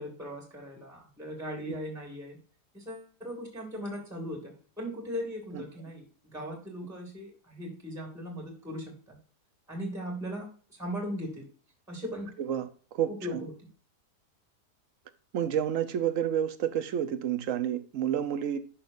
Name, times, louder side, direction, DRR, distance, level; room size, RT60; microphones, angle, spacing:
voice 1, 0.0-2.4 2.7-9.2 9.7-11.5 11.9-12.3 13.1-13.5, equal, ahead, 2.1 m, -38 dB
voice 2, 12.4-13.4 15.3-18.6, right 9 dB, 60° right, 1.0 m, -30 dB
11.5 x 5.8 x 2.6 m
omnidirectional pair, 1.7 m